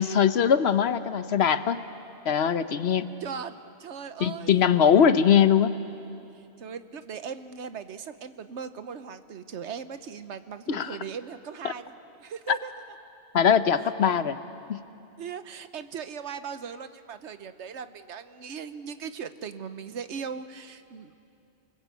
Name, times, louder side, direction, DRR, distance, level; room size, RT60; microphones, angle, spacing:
voice 1, 0.0-1.8 2.3-3.1 4.2-5.8 10.7-11.0 12.5-12.6 13.3-14.4 14.7-14.8, left 8 dB, 70° left, 12 dB, 1.1 m, -21 dB
voice 2, 3.2-4.6 6.6-11.9 12.2-12.7 15.2-21.1, right 6 dB, 85° right, 11 dB, 1.2 m, -38 dB
29.0 x 21.0 x 8.3 m, 2.7 s
omnidirectional pair, 1.2 m